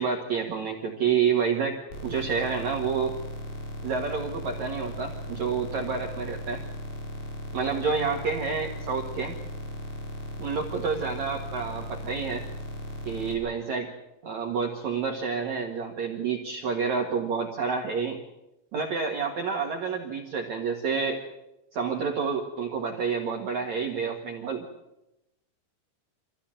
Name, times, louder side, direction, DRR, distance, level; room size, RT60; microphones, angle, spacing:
voice 1, 0.0-1.8 2.0-3.1 3.8-6.6 7.5-9.4 10.4-12.4 13.1-13.9 14.2-18.2 18.7-21.2 21.7-24.6, right 5 dB, 50° right, 1 dB, 2.4 m, -29 dB
sound 1, 1.9-13.3, equal, 60° left, 6.1 m, -37 dB
25.5 x 16.0 x 9.0 m, 0.93 s
omnidirectional pair, 5.2 m